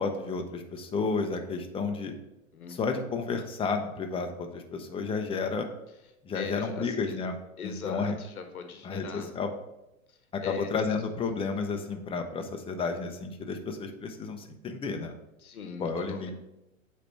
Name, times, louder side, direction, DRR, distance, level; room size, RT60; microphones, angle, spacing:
voice 1, 0.0-2.1 2.7-5.7 6.2-7.4 7.6-8.1 8.8-9.5 10.3-15.1 15.8-16.3, left 4 dB, 15° left, 4 dB, 0.6 m, -32 dB
voice 2, 6.3-7.2 7.6-9.3 10.1-10.7 15.4-16.3, left 5 dB, 90° left, 6 dB, 1.0 m, -40 dB
8.2 x 3.4 x 4.5 m, 0.92 s
hypercardioid pair, 110°, 42 cm